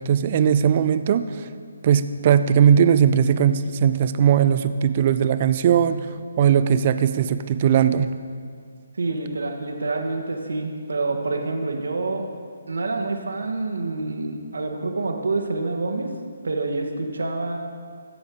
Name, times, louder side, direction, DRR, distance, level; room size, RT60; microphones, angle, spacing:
voice 1, 0.0-1.5 1.8-6.1 6.4-8.1, right 8 dB, 35° right, 11 dB, 0.4 m, -19 dB
voice 2, 9.0-12.3 12.7-16.1 16.4-17.6, right 3 dB, 70° right, 3 dB, 1.3 m, -27 dB
14.5 x 7.7 x 3.6 m, 2.1 s
figure-of-eight pair, 145°, 0 cm